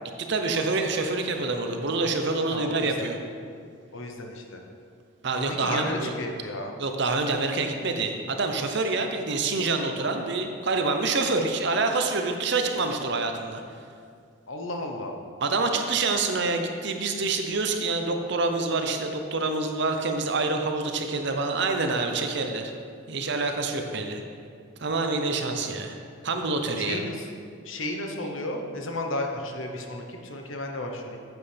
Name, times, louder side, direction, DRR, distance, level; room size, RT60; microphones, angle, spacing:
voice 1, 0.2-3.2 5.2-6.1 6.8-13.6 15.4-22.7 23.1-24.2 24.8-25.9 26.2-27.0, right 3 dB, 60° right, 5 dB, 0.7 m, -27 dB
voice 2, 2.5-3.1 3.9-4.6 5.3-6.7 14.5-15.2 26.5-27.3 27.6-31.2, left 1 dB, 70° left, 3 dB, 1.0 m, -33 dB
9.6 x 8.0 x 3.5 m, 2.2 s
head